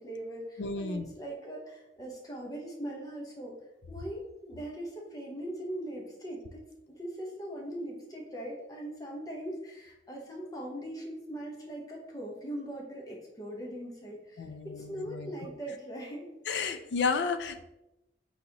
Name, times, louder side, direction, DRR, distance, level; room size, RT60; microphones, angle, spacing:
voice 1, 0.0-3.5 3.9-6.6 6.9-16.3, right 1 dB, 20° left, -2 dB, 0.9 m, -40 dB
voice 2, 0.6-1.0 14.4-15.3 16.5-17.6, left 5 dB, 80° left, 9 dB, 0.4 m, -32 dB
4.1 x 4.0 x 2.8 m, 0.91 s
head